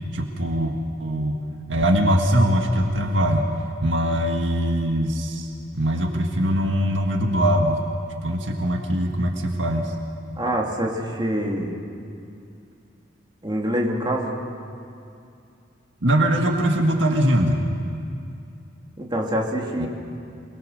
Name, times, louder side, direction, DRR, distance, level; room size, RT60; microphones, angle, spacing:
voice 1, 0.1-1.4 1.7-3.5 3.8-7.8 8.2-9.9 16.0-17.7 19.8-19.9, equal, 70° right, 2 dB, 1.9 m, -22 dB
voice 2, 10.4-11.8 13.4-14.3 19.0-19.9, equal, 25° right, -1 dB, 3.0 m, -25 dB
28.0 x 21.5 x 6.7 m, 2.5 s
head